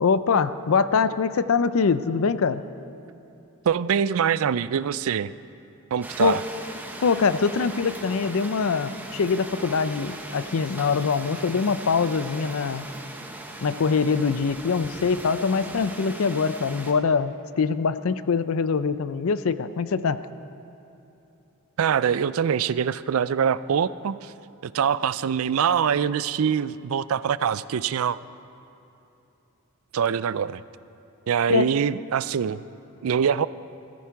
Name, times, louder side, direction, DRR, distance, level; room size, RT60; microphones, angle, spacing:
voice 1, 0.0-2.6 6.2-6.4 7.0-12.8 13.6-20.2 31.5-31.7, left 5 dB, 70° left, 14 dB, 0.5 m, -23 dB
voice 2, 3.7-5.3 5.9-6.4 21.8-24.3 24.6-28.2 29.9-30.6 31.3-32.6 33.0-33.5, right 7 dB, 70° right, 17 dB, 0.4 m, -24 dB
sound 1, 6.0-16.9, right 1 dB, 10° right, 0.8 m, -39 dB
15.0 x 14.0 x 4.7 m, 2.9 s
head